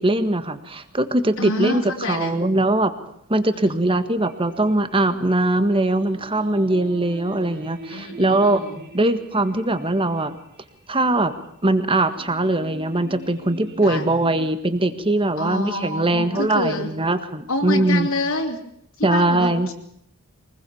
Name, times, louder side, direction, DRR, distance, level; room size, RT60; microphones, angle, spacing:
voice 1, 0.0-2.9 3.3-8.7 8.9-10.3 10.9-11.3 11.6-18.1 19.0-19.7, right 2 dB, 25° right, 10 dB, 1.7 m, -21 dB
voice 2, 1.4-2.4 3.5-3.8 7.9-8.8 13.8-14.0 15.4-16.9 17.5-18.6 19.0-19.7, left 2 dB, 70° left, -1 dB, 3.1 m, -27 dB
sound 1, 4.2-14.6, right 2 dB, 50° right, 3.9 m, -44 dB
23.5 x 20.5 x 7.1 m, 0.73 s
head